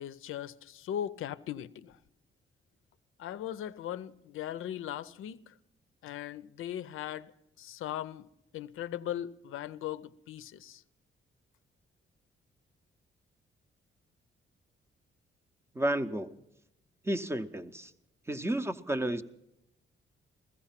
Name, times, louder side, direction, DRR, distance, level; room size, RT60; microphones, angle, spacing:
voice 1, 0.0-2.0 3.2-5.5 6.0-7.3 7.6-8.3 8.5-10.8, left 11 dB, 80° left, 0.5 m, -39 dB
voice 2, 15.7-16.3 17.0-17.9 18.3-19.2, right 1 dB, 10° right, 0.5 m, -31 dB
15.0 x 14.5 x 5.7 m
cardioid pair, 115°, 21 cm